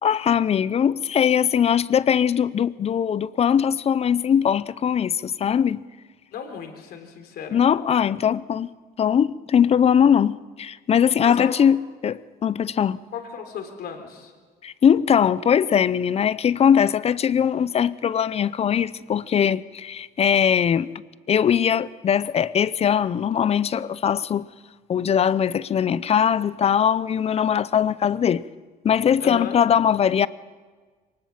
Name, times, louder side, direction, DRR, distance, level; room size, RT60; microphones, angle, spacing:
voice 1, 0.0-5.8 7.5-8.7 9.0-13.0 14.6-20.9 21.3-24.5 24.9-28.4 28.8-30.3, left 8 dB, 35° left, 0.6 m, -21 dB
voice 2, 6.3-7.6 11.2-11.6 13.1-14.3 29.2-29.6, left 6 dB, 70° left, 3.5 m, -35 dB
22.5 x 19.0 x 7.3 m
cardioid pair, 110°, 17 cm